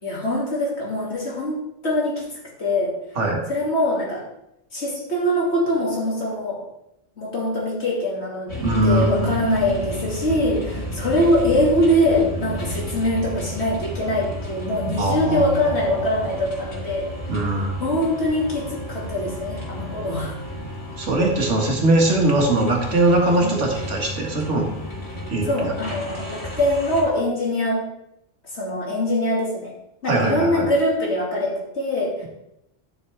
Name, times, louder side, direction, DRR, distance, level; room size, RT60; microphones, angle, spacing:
voice 1, 0.0-2.3 2.6-2.9 3.5-4.2 4.7-6.6 7.2-17.1 17.8-20.3 23.4-23.6 25.5-27.8 28.5-29.7 30.0-32.3, left 1 dB, 65° left, -3 dB, 2.5 m, -23 dB
sound 1, 8.5-27.0, equal, 90° left, 2.8 m, -32 dB
voice 2, 8.6-9.3 15.0-15.4 15.9-16.0 17.3-17.9 21.0-24.7 25.3-25.7 30.1-30.7, right 2 dB, 75° right, 0 dB, 2.0 m, -21 dB
12.0 x 6.3 x 3.3 m, 0.84 s
omnidirectional pair, 1.2 m